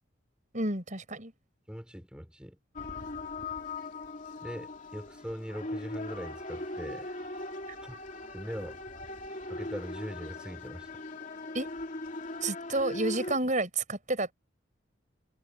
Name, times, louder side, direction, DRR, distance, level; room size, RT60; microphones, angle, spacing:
voice 1, 0.5-1.3 11.5-11.7 12.4-14.3, right 2 dB, 40° right, 7.1 m, -30 dB
voice 2, 1.7-2.6 4.4-7.1 7.8-8.0 8.3-8.8 9.5-10.9, equal, 5° right, 4.6 m, -41 dB
sound 1, 2.8-13.4, left 2 dB, 40° left, 3.1 m, -40 dB
head